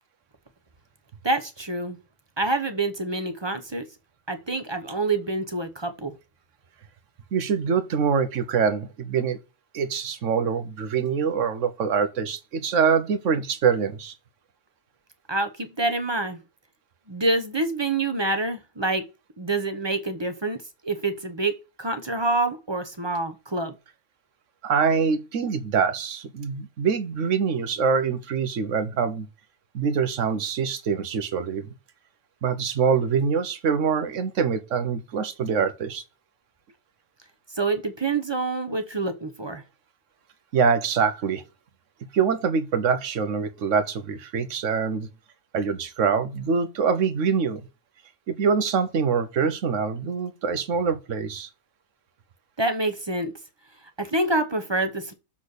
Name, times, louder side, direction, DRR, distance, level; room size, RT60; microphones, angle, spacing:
voice 1, 1.2-2.0 2.4-3.9 4.3-6.1 15.3-16.4 17.1-19.1 19.4-23.7 37.5-39.6 52.6-53.3 54.0-55.1, right 2 dB, 25° right, 0.8 m, -27 dB
voice 2, 7.3-9.4 9.7-14.1 24.6-29.3 29.7-31.7 32.4-36.0 40.5-41.4 42.1-45.1 45.5-47.6 48.3-51.5, right 6 dB, 75° right, 1.2 m, -24 dB
7.1 x 4.2 x 6.5 m
omnidirectional pair, 1.3 m